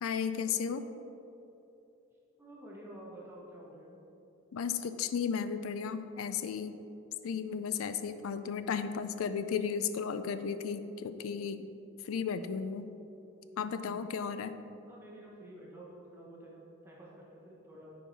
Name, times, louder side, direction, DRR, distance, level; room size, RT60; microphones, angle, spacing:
voice 1, 0.0-0.8 4.5-6.7 7.2-11.7 12.0-12.9 13.6-14.5, left 6 dB, 75° left, 11 dB, 0.4 m, -34 dB
voice 2, 2.4-4.0 14.9-18.0, right 1 dB, 10° right, -4 dB, 1.0 m, -50 dB
9.2 x 4.7 x 4.0 m, 2.9 s
head